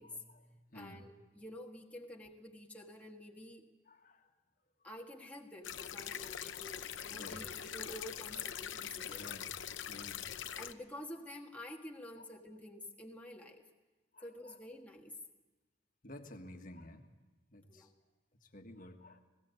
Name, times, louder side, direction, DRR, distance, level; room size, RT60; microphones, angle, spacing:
voice 1, 0.0-3.6 4.8-9.4 10.6-13.6 14.2-15.2 17.7-17.9, left 1 dB, 10° left, 0 dB, 1.5 m, -49 dB
voice 2, 0.7-1.1 3.9-4.2 6.2-6.6 7.1-7.4 9.0-9.6 9.9-10.3 12.2-12.3 14.1-14.6 16.0-17.1 17.5-17.9 18.4-19.2, left 1 dB, 45° left, 5 dB, 1.6 m, -52 dB
sound 1, 5.6-10.7, left 9 dB, 85° left, 0.8 m, -43 dB
20.0 x 17.0 x 8.2 m, 1.2 s
head